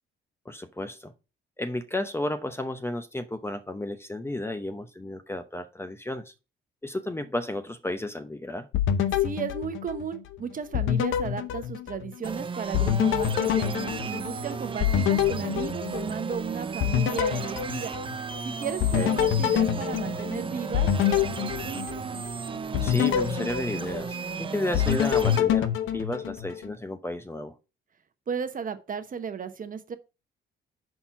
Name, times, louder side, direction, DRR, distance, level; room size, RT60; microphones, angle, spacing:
voice 1, 0.4-1.1 1.6-6.3 6.8-8.7 18.6-19.1 22.8-27.5, left 1 dB, 10° left, 0.8 m, -33 dB
sound 1, 8.7-10.3 10.7-12.4 12.7-16.4 16.8-18.4 18.8-22.3 22.7-24.4 24.7-26.7, left 10 dB, 80° left, 0.7 m, -26 dB
voice 2, 9.2-17.9 18.4-21.9 28.3-30.0, right 6 dB, 45° right, 0.9 m, -35 dB
sound 2, 12.2-25.4, right 5 dB, 25° right, 0.5 m, -35 dB
sound 3, 18.8-26.6, left 3 dB, 40° left, 2.7 m, -53 dB
5.7 x 4.4 x 5.6 m
cardioid pair, 90°, 20 cm